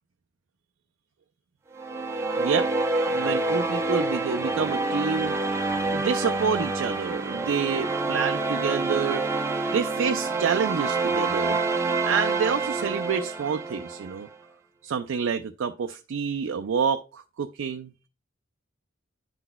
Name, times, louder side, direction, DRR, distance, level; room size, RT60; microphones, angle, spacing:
sound 1, 1.8-14.1, right 3 dB, 15° right, 0.6 m, -27 dB
voice 1, 2.4-2.7 3.1-5.3 5.9-9.2 9.7-14.3 14.8-18.1, right 6 dB, 85° right, 0.4 m, -28 dB
10.5 x 3.9 x 2.2 m
head